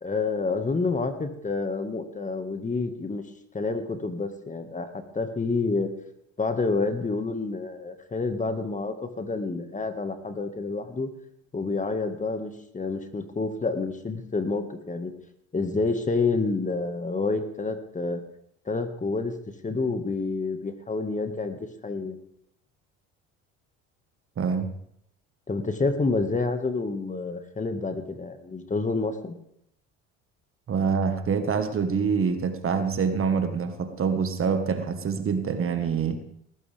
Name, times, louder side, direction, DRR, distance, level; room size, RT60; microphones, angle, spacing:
voice 1, 0.0-3.2 3.5-5.9 6.4-11.1 11.5-15.1 15.5-18.2 18.7-19.3 19.6-22.2 25.5-29.3, left 3 dB, 25° left, 8 dB, 1.9 m, -28 dB
voice 2, 24.4-24.7 30.7-36.2, right 6 dB, 40° right, 8 dB, 1.7 m, -26 dB
18.0 x 15.0 x 3.6 m, 0.72 s
hypercardioid pair, 75°, 33 cm